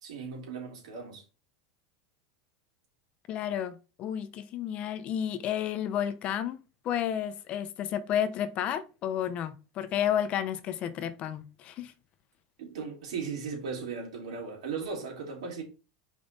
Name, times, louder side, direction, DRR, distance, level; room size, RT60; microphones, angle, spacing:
voice 1, 0.0-1.2 12.6-15.6, right 5 dB, 90° right, 3.1 m, -37 dB
voice 2, 3.3-11.9, left 10 dB, 40° left, 0.7 m, -31 dB
5.3 x 3.7 x 5.3 m
supercardioid pair, 145°, 3 cm